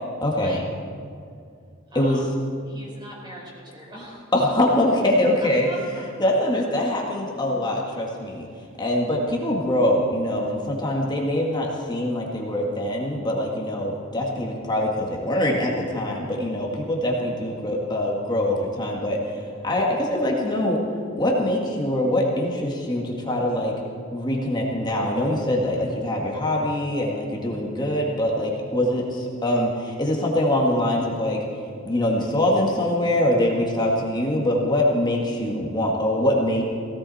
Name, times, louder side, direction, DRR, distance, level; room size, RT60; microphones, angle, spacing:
voice 1, 0.2-0.6 1.9-2.2 4.3-5.7 6.2-8.5 8.8-19.2 19.6-20.8 21.2-23.7 24.1-31.4 31.8-36.6, left 1 dB, 20° left, -2 dB, 1.9 m, -23 dB
voice 2, 1.9-2.3 2.7-4.3 5.6-6.3 8.2-8.6, right 1 dB, 25° right, -3 dB, 4.6 m, -41 dB
17.5 x 17.5 x 4.3 m, 2.3 s
head